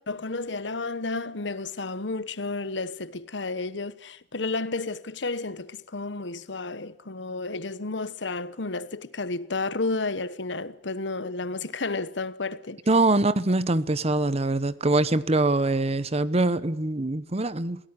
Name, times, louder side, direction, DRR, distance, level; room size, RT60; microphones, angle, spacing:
voice 1, 0.1-12.8, left 3 dB, 75° left, 1.2 m, -32 dB
voice 2, 12.9-17.9, right 2 dB, 35° right, 1.0 m, -23 dB
24.0 x 17.5 x 9.8 m
head